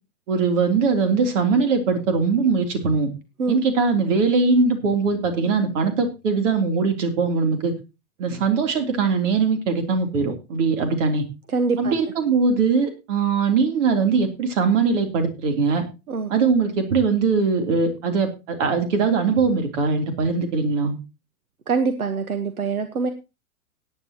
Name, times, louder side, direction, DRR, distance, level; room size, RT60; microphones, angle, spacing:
voice 1, 0.3-3.1 3.5-7.7 8.2-11.3 11.8-15.8 16.3-21.0, right 4 dB, 60° right, 5 dB, 3.5 m, -21 dB
voice 2, 11.5-11.9 16.1-16.3 21.7-23.1, right 4 dB, 80° right, 9 dB, 1.4 m, -24 dB
18.0 x 9.7 x 3.0 m, 0.28 s
figure-of-eight pair, 100°, 42 cm